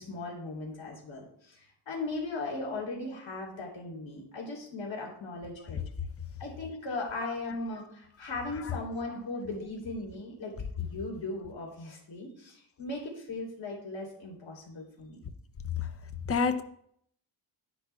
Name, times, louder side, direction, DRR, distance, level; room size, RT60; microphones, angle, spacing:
voice 1, 0.0-5.8 6.4-15.2, left 2 dB, 65° left, -1 dB, 3.2 m, -38 dB
voice 2, 16.3-16.6, left 5 dB, 30° left, 10 dB, 0.6 m, -28 dB
10.0 x 9.8 x 2.3 m, 0.67 s
wide cardioid pair, 110°, 49 cm